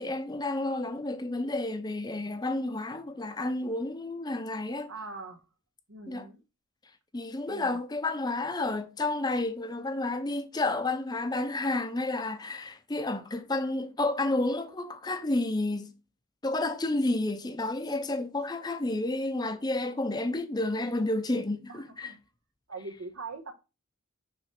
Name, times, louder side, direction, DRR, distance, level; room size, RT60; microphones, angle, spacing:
voice 1, 0.0-4.9 6.1-6.3 7.1-15.9 16.4-22.1, left 2 dB, 20° left, 0.6 m, -31 dB
voice 2, 4.9-5.4 5.9-6.4 7.5-7.8 21.7-22.2 22.7-23.5, right 3 dB, 80° right, 1.2 m, -42 dB
5.9 x 3.2 x 5.7 m
head